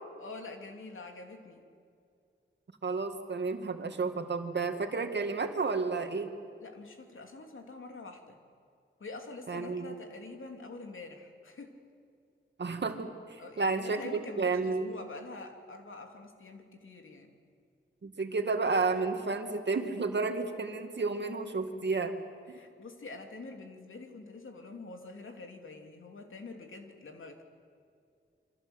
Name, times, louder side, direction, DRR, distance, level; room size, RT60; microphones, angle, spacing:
voice 1, 0.2-1.6 6.6-8.4 9.0-11.7 13.4-17.3 22.5-27.4, left 3 dB, 75° left, 4 dB, 3.1 m, -46 dB
voice 2, 2.8-6.3 9.5-10.0 12.6-14.9 18.0-22.1 22.5-22.6, right 4 dB, 55° right, 5 dB, 2.2 m, -31 dB
28.5 x 25.0 x 8.1 m, 2.4 s
wide cardioid pair, 125°, 21 cm